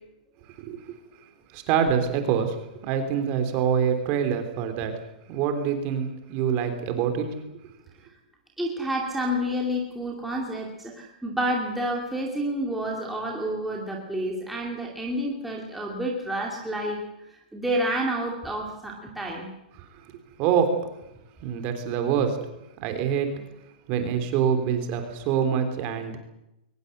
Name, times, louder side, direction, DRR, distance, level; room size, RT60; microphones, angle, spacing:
voice 1, 1.5-2.6 2.8-5.0 5.3-7.3 19.7-19.8 20.4-20.8 21.4-22.4 22.8-23.3 23.9-26.2, right 7 dB, 25° right, 7 dB, 3.3 m, -25 dB
voice 2, 8.6-17.0 17.5-19.5, equal, ahead, -2 dB, 2.5 m, -29 dB
22.5 x 20.0 x 8.0 m, 0.86 s
hypercardioid pair, 175°, 5 cm